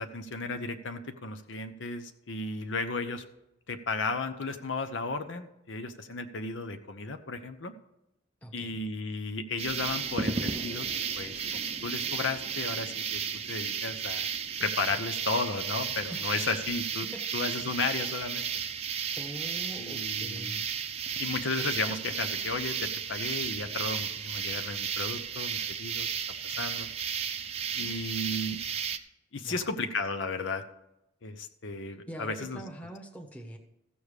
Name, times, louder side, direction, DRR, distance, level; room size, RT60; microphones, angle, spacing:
voice 1, 0.0-3.2 3.7-7.7 8.5-10.9 11.2-13.2 13.5-14.3 14.6-17.1 17.3-18.6 19.8-20.5 21.2-26.1 26.4-26.9 27.7-28.6 29.3-30.6 31.2-32.6, left 3 dB, 75° left, 7 dB, 0.9 m, -34 dB
voice 2, 8.4-8.8 16.1-16.4 17.0-17.2 17.6-17.7 19.2-20.7 27.8-28.4 29.4-29.8 32.1-33.6, right 1 dB, 10° left, 2 dB, 1.2 m, -44 dB
sound 1, 9.6-29.0, right 7 dB, 35° right, 0.6 m, -34 dB
15.0 x 7.1 x 4.9 m, 0.86 s
head